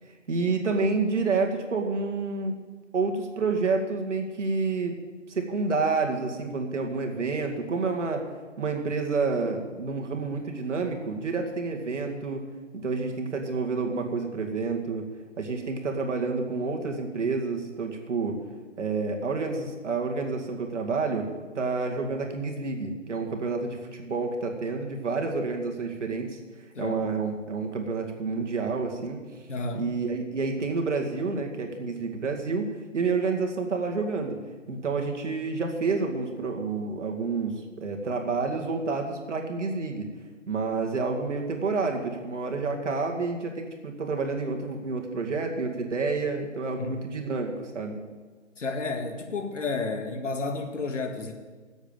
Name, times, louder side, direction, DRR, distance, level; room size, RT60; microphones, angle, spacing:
voice 1, 0.3-2.5 2.9-5.0 5.3-8.2 8.6-12.4 12.7-15.1 15.4-18.4 18.8-21.3 21.5-26.4 26.8-29.2 29.7-32.7 32.9-34.4 34.7-40.1 40.5-48.0, right 4 dB, 70° right, 3 dB, 2.4 m, -29 dB
voice 2, 29.5-29.9 46.8-47.0 48.6-51.3, left 3 dB, 75° left, 5 dB, 2.0 m, -31 dB
10.5 x 8.0 x 9.0 m, 1.4 s
hypercardioid pair, 145°, 37 cm